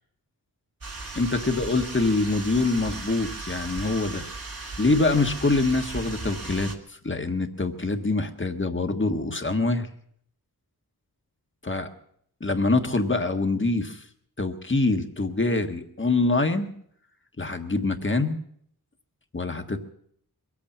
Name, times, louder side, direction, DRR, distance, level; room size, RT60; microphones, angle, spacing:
sound 1, 0.8-6.7, right 3 dB, 65° right, 2.4 m, -36 dB
voice 1, 1.1-4.2 4.8-9.9 11.6-11.9 12.4-14.0 14.4-16.7 17.4-18.4 19.3-19.8, left 3 dB, 30° left, 6 dB, 1.5 m, -25 dB
22.5 x 8.6 x 7.2 m, 0.66 s
wide cardioid pair, 80°, 37 cm